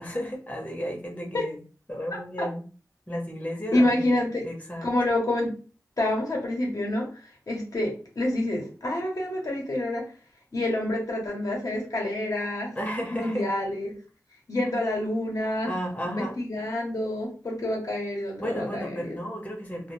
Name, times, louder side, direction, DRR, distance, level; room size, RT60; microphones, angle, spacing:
voice 1, 0.0-1.6 1.9-2.6 3.1-4.1 4.4-4.9 12.8-13.5 15.7-16.4 18.4-19.9, equal, 25° left, 0 dB, 0.8 m, -33 dB
voice 2, 3.7-4.5 4.8-5.5 6.0-10.0 10.5-12.7 13.1-14.0 14.5-15.7 16.0-19.2, left 1 dB, 70° left, -2 dB, 0.8 m, -27 dB
2.2 x 2.1 x 3.0 m, 0.37 s
wide cardioid pair, 60°, 6 cm